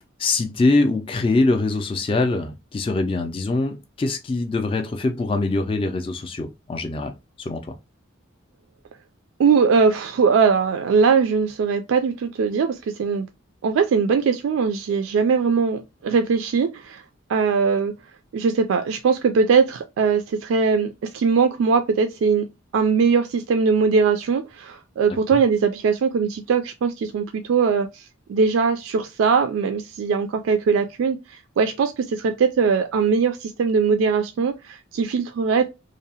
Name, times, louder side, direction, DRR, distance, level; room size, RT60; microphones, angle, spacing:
voice 1, 0.2-7.8 25.3-25.4, left 3 dB, 25° left, 0.3 m, -23 dB
voice 2, 9.4-13.3 13.6-17.0 17.3-17.9 18.3-22.4 22.7-28.0 28.3-35.7, right 5 dB, 75° right, 0.3 m, -20 dB
2.7 x 2.0 x 2.7 m
head